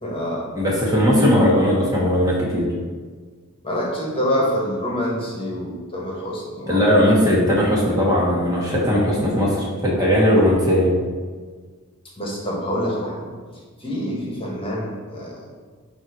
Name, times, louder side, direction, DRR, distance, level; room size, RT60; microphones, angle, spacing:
voice 1, 0.0-0.5 3.6-7.1 12.2-13.3 13.8-15.5, equal, 25° left, -3 dB, 1.4 m, -26 dB
voice 2, 0.5-2.7 6.7-10.9, equal, 15° right, -5 dB, 1.3 m, -18 dB
7.3 x 3.0 x 5.2 m, 1.5 s
head